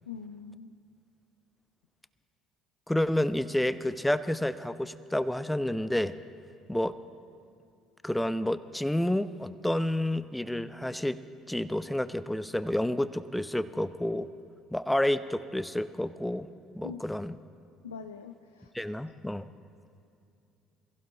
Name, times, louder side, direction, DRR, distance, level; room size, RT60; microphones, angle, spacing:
voice 1, 0.1-0.8 16.8-17.0 17.8-18.7, left 6 dB, 90° left, 6 dB, 0.4 m, -43 dB
voice 2, 2.9-6.1 6.7-6.9 8.0-11.2 11.5-14.3 14.7-16.5 16.7-17.4 18.7-19.5, left 1 dB, 5° left, 13 dB, 0.7 m, -29 dB
22.5 x 15.5 x 3.9 m, 2.6 s
hypercardioid pair, 60°, 0 cm